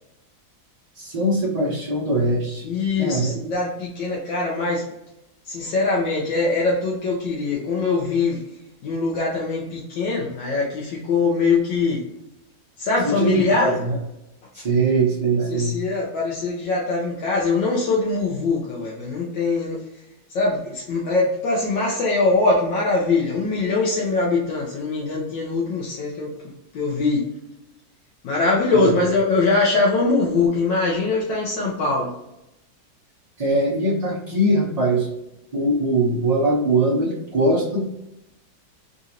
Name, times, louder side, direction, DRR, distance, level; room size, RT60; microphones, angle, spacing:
voice 1, 1.0-2.6 3.0-3.3 13.0-14.0 14.5-15.8 28.7-28.9 33.4-35.1 35.5-37.8, right 2 dB, 50° right, -5 dB, 0.4 m, -21 dB
voice 2, 2.6-4.8 5.5-8.4 8.8-12.0 12.8-13.7 14.5-14.6 15.4-19.8 20.3-26.3 26.7-27.2 28.2-32.1, left 3 dB, 80° left, -4 dB, 1.4 m, -22 dB
3.9 x 2.5 x 2.8 m, 0.87 s
omnidirectional pair, 2.0 m